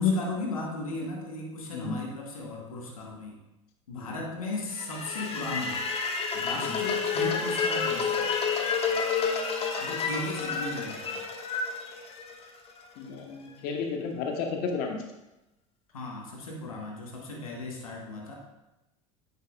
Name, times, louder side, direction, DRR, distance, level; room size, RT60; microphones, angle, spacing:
voice 1, 0.0-3.4 3.9-5.8 6.3-8.3 9.8-11.2 15.9-18.3, left 2 dB, 90° left, -1 dB, 1.3 m, -36 dB
sound 1, 4.7-12.8, left 5 dB, 35° left, 1.1 m, -30 dB
voice 2, 13.0-15.0, left 5 dB, 60° left, 3 dB, 1.2 m, -31 dB
9.3 x 5.8 x 2.4 m, 0.96 s
hypercardioid pair, 85°, 18 cm